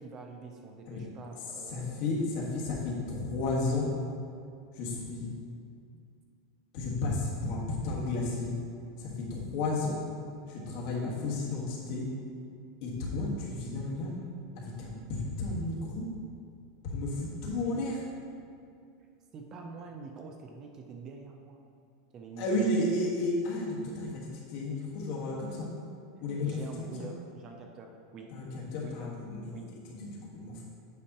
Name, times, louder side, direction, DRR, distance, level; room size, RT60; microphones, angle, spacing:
voice 1, 0.0-2.1 5.9-6.0 19.3-21.6 22.1-22.5 26.4-28.3 28.8-29.1 29.5-29.7, right 4 dB, 25° right, 3 dB, 0.4 m, -46 dB
voice 2, 1.7-3.9 4.7-5.3 6.7-8.5 9.0-10.0 10.5-12.1 12.8-14.2 14.6-16.1 16.8-18.0 22.4-25.7 26.2-26.6 27.0-27.1 28.3-29.4 29.9-30.6, left 2 dB, 50° left, -3 dB, 1.3 m, -32 dB
8.3 x 5.3 x 2.8 m, 2.4 s
supercardioid pair, 170°, 2 cm